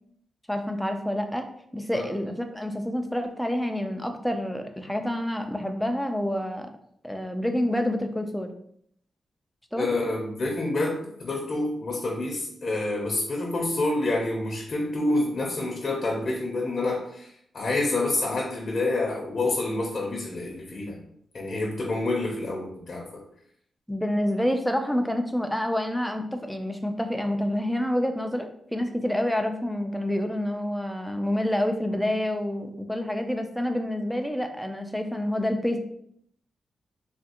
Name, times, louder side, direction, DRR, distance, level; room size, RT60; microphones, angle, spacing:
voice 1, 0.5-1.5 1.7-6.7 7.0-8.5 9.7-10.0 23.9-35.8, left 1 dB, ahead, 5 dB, 0.4 m, -28 dB
voice 2, 9.8-21.0 21.3-23.2, left 2 dB, 45° left, -1 dB, 0.6 m, -28 dB
3.4 x 2.4 x 2.8 m, 0.69 s
wide cardioid pair, 110°, 0 cm